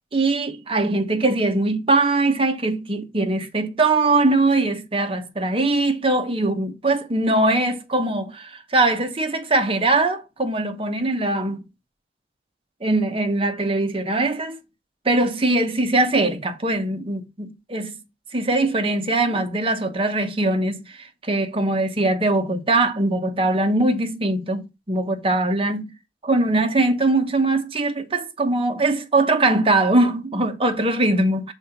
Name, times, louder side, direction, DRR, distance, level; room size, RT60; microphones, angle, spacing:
voice 1, 0.1-11.6 12.8-14.6 15.0-18.0 18.3-25.9 26.2-31.5, right 2 dB, 30° right, 1.0 m, -21 dB
6.3 x 3.8 x 5.7 m
head